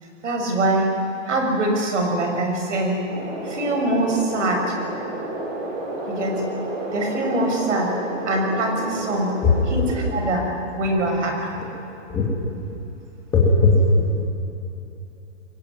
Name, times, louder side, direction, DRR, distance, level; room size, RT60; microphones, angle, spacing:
voice 1, 0.2-0.9 1.2-3.0 3.4-4.7 6.1-6.4 6.9-7.9 8.3-9.3 9.7-9.9 10.1-10.4 10.8-11.6, right 1 dB, 70° right, 2 dB, 6.5 m, -23 dB
sound 1, 3.1-10.3, right 2 dB, 20° right, 3.4 m, -31 dB
voice 2, 9.4-9.8 12.1-12.2 13.3-14.2, left 3 dB, 10° left, -3 dB, 2.6 m, -18 dB
23.0 x 20.0 x 9.6 m, 2.9 s
hypercardioid pair, 175°, 38 cm